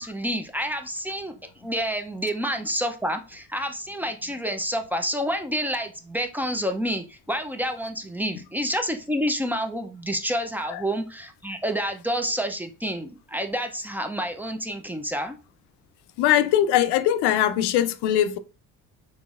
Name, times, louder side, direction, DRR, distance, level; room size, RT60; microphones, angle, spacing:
voice 1, 0.0-15.4, equal, 5° right, 0.4 m, -29 dB
voice 2, 16.2-18.4, left 11 dB, 85° left, 0.5 m, -21 dB
3.9 x 3.0 x 2.4 m
cardioid pair, 85°, 39 cm